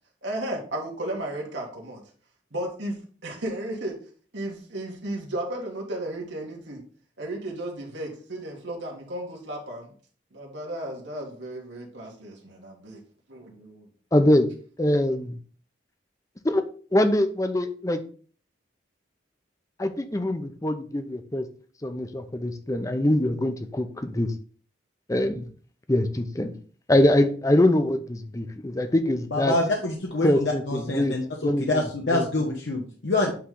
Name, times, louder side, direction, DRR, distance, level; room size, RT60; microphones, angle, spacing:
voice 1, 0.2-2.0 2.5-4.0 4.3-6.8 7.2-9.9 10.3-13.0 13.3-13.9, right 1 dB, 85° right, -1 dB, 1.7 m, -34 dB
voice 2, 14.1-14.5 14.8-15.4 16.4-16.6 16.9-18.0 19.8-21.4 21.8-24.3 25.1-25.5 25.9-26.5 26.9-29.6 30.2-31.2 31.4-32.5, left 1 dB, 20° left, 8 dB, 0.6 m, -23 dB
voice 3, 29.3-31.2 31.6-33.3, left 2 dB, 85° left, 1 dB, 1.0 m, -26 dB
8.5 x 3.2 x 3.8 m, 0.42 s
head